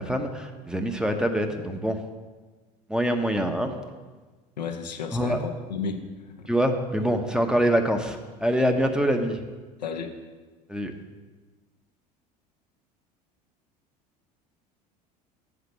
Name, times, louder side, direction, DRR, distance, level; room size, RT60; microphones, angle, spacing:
voice 1, 0.0-2.0 2.9-3.7 5.1-5.4 6.5-9.4 10.7-10.9, equal, 5° right, 5 dB, 0.9 m, -25 dB
voice 2, 4.6-6.5 9.8-10.1, left 4 dB, 85° left, 4 dB, 0.8 m, -33 dB
7.9 x 5.0 x 6.7 m, 1.3 s
hypercardioid pair, 70°, 21 cm